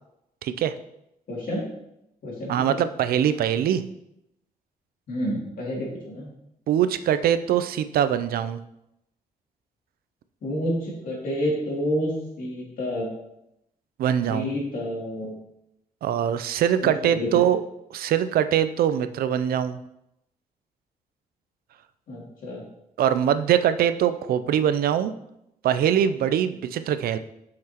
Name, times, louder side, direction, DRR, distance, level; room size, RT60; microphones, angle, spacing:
voice 1, 0.4-0.8 2.5-3.8 6.7-8.6 14.0-14.5 16.0-17.6 17.9-19.8 23.0-25.1 25.6-27.2, right 9 dB, 80° right, 12 dB, 0.4 m, -23 dB
voice 2, 1.3-1.7 2.2-2.7 5.1-6.3 10.4-12.1 12.4-13.1 14.3-15.4 16.8-17.4 22.1-22.7, equal, 65° left, -4 dB, 2.6 m, -29 dB
7.6 x 5.8 x 2.9 m, 0.82 s
cardioid pair, 135°, 15 cm